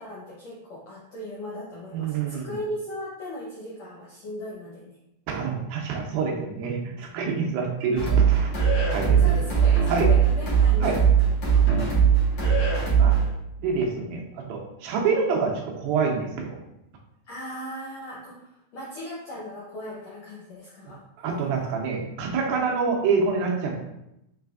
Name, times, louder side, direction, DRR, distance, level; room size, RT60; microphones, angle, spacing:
voice 1, 0.0-5.0 9.2-11.3 11.6-12.2 17.3-21.0, left 1 dB, 80° left, -6 dB, 1.5 m, -38 dB
voice 2, 1.9-2.5 5.3-8.5 8.9-9.3 9.9-10.1 10.8-11.0 11.7-11.9 13.0-13.2 13.6-16.6 21.2-23.7, right 5 dB, 90° right, 0 dB, 2.6 m, -27 dB
sound 1, 8.0-13.3, right 7 dB, 50° left, 1.7 m, -20 dB
6.5 x 3.3 x 2.4 m, 0.84 s
omnidirectional pair, 4.1 m